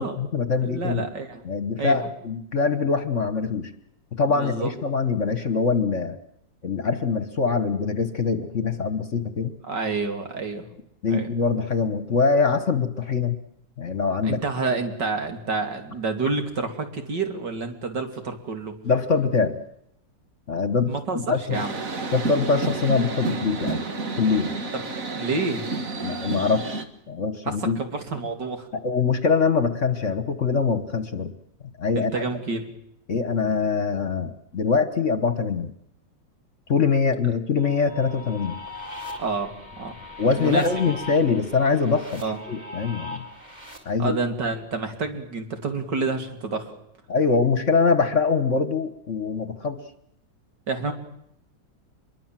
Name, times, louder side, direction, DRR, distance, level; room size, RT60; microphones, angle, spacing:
voice 1, 0.0-1.0 1.4-3.7 4.2-6.2 6.6-9.5 11.0-13.4 13.8-14.4 18.8-19.6 20.5-20.9 21.3-21.6 22.1-23.8 24.2-24.5 26.0-26.7 27.1-27.8 28.7-31.3 31.8-32.2 33.1-35.7 36.7-38.6 40.2-43.2 43.8-44.2 47.1-49.8, left 5 dB, 45° left, 11 dB, 1.5 m, -23 dB
voice 2, 0.6-1.4 1.8-2.1 4.3-4.7 9.7-10.7 11.1-11.3 14.2-18.8 20.9-21.7 24.7-25.7 27.5-28.7 31.9-32.7 39.2-40.0 40.4-41.0 42.2-42.4 44.0-46.7 50.7-50.9, right 4 dB, 65° right, 6 dB, 3.4 m, -29 dB
sound 1, 21.5-26.8, right 3 dB, 45° right, 2.1 m, -30 dB
sound 2, 37.6-43.8, left 2 dB, 20° right, 4.3 m, -39 dB
25.5 x 22.5 x 7.6 m, 0.75 s
omnidirectional pair, 2.0 m